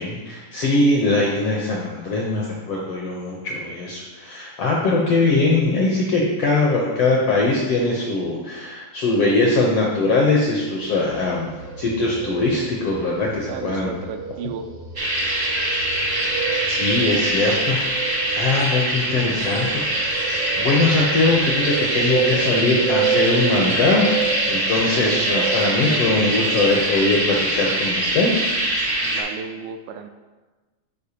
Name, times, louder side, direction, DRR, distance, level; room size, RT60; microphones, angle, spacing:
voice 1, 0.0-11.5 11.8-13.9 16.7-17.8 18.3-19.8 20.1-28.3, left 3 dB, 75° left, -2 dB, 1.4 m, -21 dB
sound 1, 10.8-27.8, right 7 dB, 70° right, 1.4 m, -30 dB
voice 2, 13.5-14.7 29.0-30.1, right 6 dB, 85° right, 7 dB, 2.0 m, -33 dB
sound 2, 14.9-29.2, right 1 dB, 50° right, 0.7 m, -23 dB
11.5 x 4.3 x 2.8 m, 1.2 s
omnidirectional pair, 3.6 m